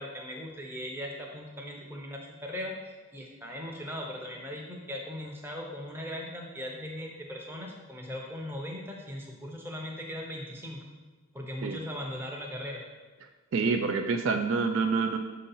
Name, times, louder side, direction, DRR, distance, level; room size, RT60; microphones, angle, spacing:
voice 1, 0.0-10.8 11.3-12.8, left 1 dB, 10° right, 0 dB, 0.7 m, -39 dB
voice 2, 13.5-15.2, right 4 dB, 60° right, 6 dB, 0.3 m, -27 dB
6.2 x 2.8 x 5.4 m, 1.3 s
head